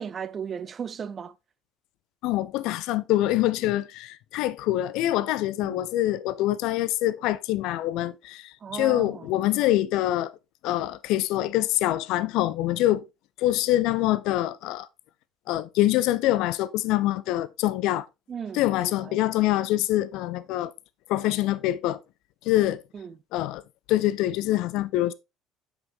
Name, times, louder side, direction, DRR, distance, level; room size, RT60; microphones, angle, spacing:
voice 1, 0.0-1.3 5.6-5.8 8.6-9.3 18.3-19.2 22.9-23.2, right 7 dB, 40° right, 0.6 m, -36 dB
voice 2, 2.2-10.3 10.6-13.0 13.4-14.9 15.5-18.1 18.5-20.7 21.1-22.0 22.4-22.8 23.3-23.6 23.9-25.1, left 15 dB, 65° left, 0.5 m, -25 dB
7.8 x 6.0 x 3.1 m
hypercardioid pair, 60°, 0 cm